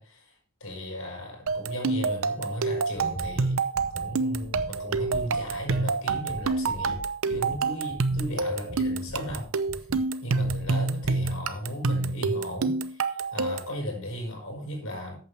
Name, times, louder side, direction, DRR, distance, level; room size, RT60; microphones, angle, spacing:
voice 1, 0.0-3.6 3.9-7.0 7.3-9.5 9.8-9.9 10.2-15.1, equal, 75° left, 1 dB, 5.1 m, -36 dB
sound 1, 1.5-13.8, right 4 dB, 75° right, 0.7 m, -28 dB
sound 2, 3.1-10.0 10.4-11.3, equal, 40° right, 4.4 m, -41 dB
14.0 x 8.6 x 3.4 m, 0.40 s
head